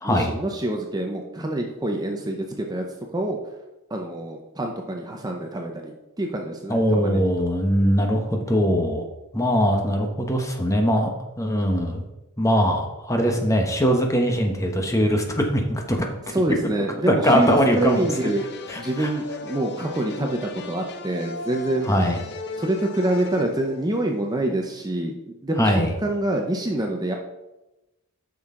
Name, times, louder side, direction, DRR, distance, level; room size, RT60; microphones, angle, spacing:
voice 1, 0.0-2.8 3.1-3.4 3.9-7.2 16.3-18.5 18.8-21.9 22.6-25.1 25.4-27.2, right 1 dB, 15° right, 2 dB, 0.6 m, -26 dB
voice 2, 6.7-9.0 9.3-11.1 11.4-12.0 12.4-16.0 16.6-16.7 17.1-18.3 18.7-19.1 21.9-22.2 25.6-25.9, equal, 15° left, 2 dB, 1.0 m, -21 dB
sound 1, 17.3-24.3, left 3 dB, 50° left, 0.7 m, -37 dB
9.3 x 6.3 x 3.8 m, 0.99 s
head